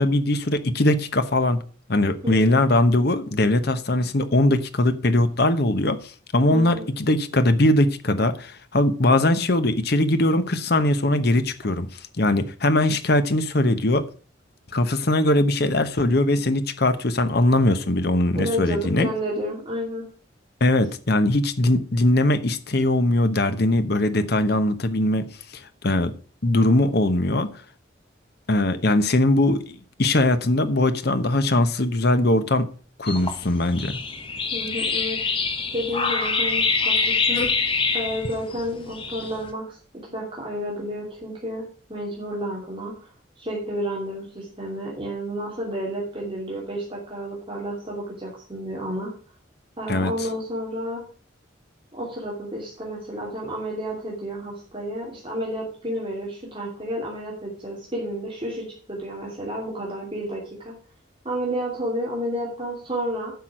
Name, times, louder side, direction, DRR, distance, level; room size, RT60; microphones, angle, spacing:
voice 1, 0.0-1.6 1.9-11.9 12.2-14.0 14.7-19.1 20.6-25.3 25.5-26.1 26.4-27.5 28.5-32.7 33.0-34.0 49.9-50.1, left 1 dB, 55° left, 11 dB, 1.0 m, -21 dB
voice 2, 2.2-2.6 6.5-6.9 18.3-20.0 34.5-35.2 35.7-37.5 37.9-41.6 41.9-43.1 43.4-49.1 49.8-51.0 51.9-60.7 61.2-63.3, equal, 25° right, -4 dB, 2.9 m, -31 dB
Backyard without dogs, 33.1-39.5, left 4 dB, 25° left, 1.2 m, -25 dB
10.5 x 6.0 x 6.2 m, 0.40 s
head